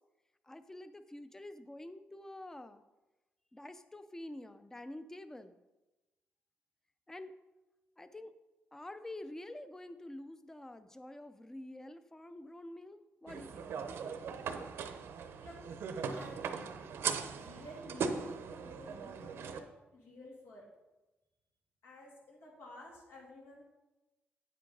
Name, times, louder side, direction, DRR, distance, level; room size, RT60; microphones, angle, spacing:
voice 1, 0.4-2.8 3.5-5.6 7.1-7.4 8.0-8.3 8.7-13.7, left 1 dB, 10° left, 11 dB, 0.5 m, -48 dB
sound 1, 13.3-19.6, right 6 dB, 80° right, 0.7 m, -39 dB
voice 2, 14.9-15.7 16.1-16.7 17.3-18.3 18.6-20.7 21.8-23.6, left 1 dB, 85° left, -3 dB, 2.9 m, -53 dB
9.1 x 7.5 x 3.9 m, 1.1 s
cardioid pair, 135°, 4 cm